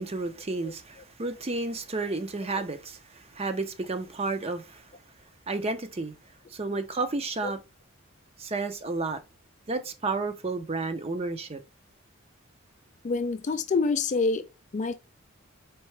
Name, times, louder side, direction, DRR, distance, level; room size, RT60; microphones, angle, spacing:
voice 1, 0.0-4.8 5.5-6.1 6.5-7.6 8.4-9.2 9.7-11.6, right 3 dB, 30° right, 0.6 m, -31 dB
voice 2, 13.0-14.5 14.7-15.0, left 4 dB, 35° left, 0.3 m, -26 dB
4.6 x 3.6 x 3.1 m
head